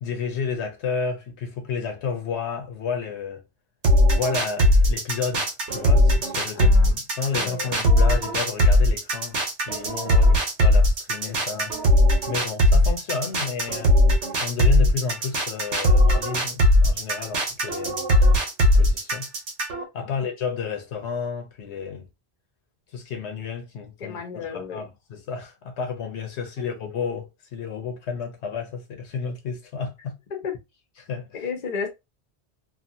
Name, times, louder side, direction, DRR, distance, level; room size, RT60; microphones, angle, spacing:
voice 1, 0.0-3.4 4.1-11.7 12.3-13.9 14.4-18.0 18.6-19.3 19.9-22.0 22.9-30.2 31.0-31.4, left 5 dB, 80° left, 1.0 m, -31 dB
sound 1, 3.8-19.8, left 1 dB, 90° right, 1.2 m, -19 dB
voice 2, 6.5-6.9 7.3-7.7 10.0-10.4 20.0-20.2 24.0-24.9 30.3-30.5 31.3-31.9, left 6 dB, 45° left, 0.7 m, -33 dB
2.8 x 2.5 x 2.6 m
omnidirectional pair, 1.1 m